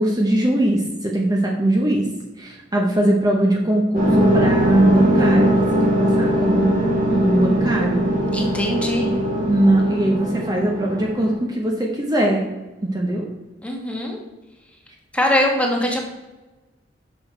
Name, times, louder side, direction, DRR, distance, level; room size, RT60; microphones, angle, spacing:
voice 1, 0.0-2.1 2.4-5.7 6.0-6.7 7.1-8.0 9.5-12.4 12.8-13.2, right 1 dB, 20° right, 0 dB, 0.8 m, -20 dB
sound 1, 3.9-11.3, equal, 50° right, 1.9 m, -20 dB
voice 2, 8.3-9.1 13.6-14.2 15.1-16.0, left 1 dB, 5° left, 0 dB, 1.3 m, -22 dB
6.1 x 6.0 x 4.5 m, 1.1 s
head